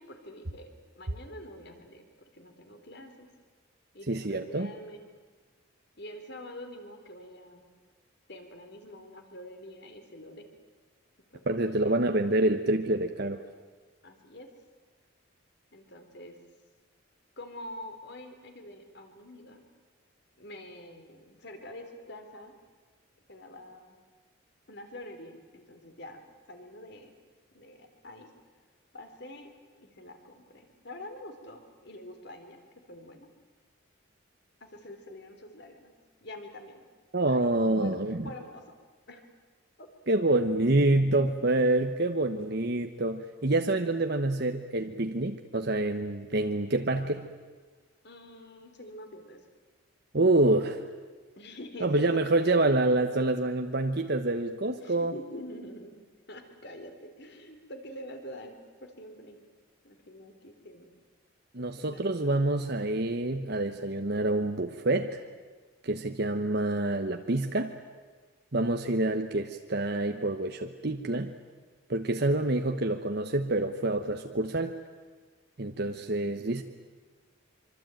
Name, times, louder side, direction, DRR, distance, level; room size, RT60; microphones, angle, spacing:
voice 1, 0.0-3.3 3.9-5.0 6.0-7.6 8.3-10.5 11.3-11.6 11.8-12.0 14.0-14.5 15.7-16.4 17.4-19.6 20.4-22.5 23.3-23.9 24.7-26.2 26.5-27.1 27.5-28.3 28.9-29.5 29.8-33.3 34.6-35.9 36.2-36.8 37.3-38.0 38.2-38.8 39.1-39.2 39.8-39.9 48.0-49.5 51.4-52.6 54.7-55.9 56.3-58.6 58.8-59.4 59.8-60.9 61.9-62.4 72.1-72.3, left 1 dB, 50° left, 6 dB, 3.6 m, -46 dB
voice 2, 4.1-4.7 11.5-13.4 37.1-38.3 40.1-47.3 50.1-50.8 51.8-55.1 61.5-65.2 65.8-67.8 68.5-71.3 71.9-74.7 75.6-76.6, right 2 dB, 50° right, 6 dB, 1.1 m, -27 dB
25.0 x 25.0 x 9.1 m, 1.4 s
head